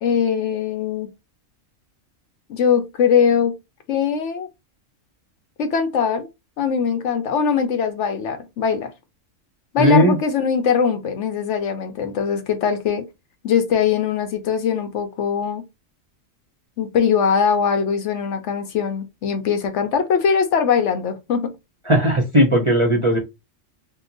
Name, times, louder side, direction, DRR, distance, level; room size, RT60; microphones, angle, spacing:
voice 1, 0.0-1.1 2.5-3.5 3.9-4.5 5.6-6.3 6.6-8.9 9.7-13.0 13.4-15.6 16.8-21.5, left 7 dB, 70° left, 0.9 m, -21 dB
voice 2, 9.8-10.2 21.9-23.2, equal, 35° right, 0.6 m, -16 dB
2.9 x 2.1 x 3.8 m
omnidirectional pair, 1.4 m